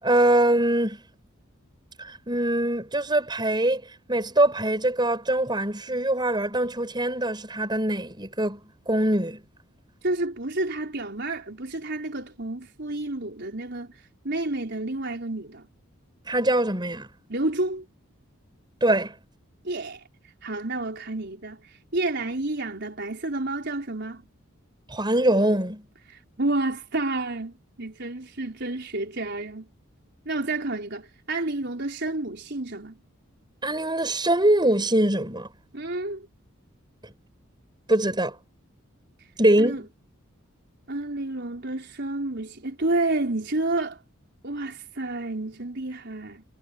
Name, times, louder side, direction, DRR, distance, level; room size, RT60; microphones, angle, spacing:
voice 1, 0.0-1.0 2.3-3.8 4.1-8.6 8.9-9.4 16.3-17.1 18.8-19.1 24.9-25.8 33.6-35.5 37.9-38.3 39.4-39.9, right 1 dB, 20° right, 6.7 m, -23 dB
voice 2, 10.0-15.7 17.3-17.8 19.6-20.0 20.4-24.3 26.1-29.7 30.2-33.0 35.7-36.3 39.6-39.8 40.9-44.0 44.4-46.4, right 2 dB, 55° right, 4.8 m, -30 dB
head